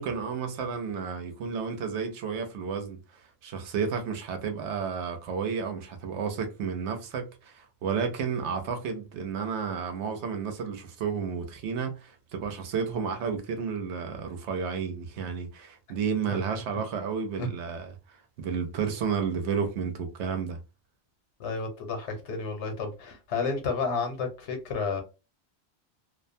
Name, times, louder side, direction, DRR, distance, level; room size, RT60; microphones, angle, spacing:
voice 1, 0.0-3.0 3.4-20.6, right 6 dB, 85° right, 1.0 m, -32 dB
voice 2, 21.4-25.0, left 4 dB, 85° left, 1.1 m, -31 dB
2.5 x 2.2 x 2.5 m
omnidirectional pair, 1.1 m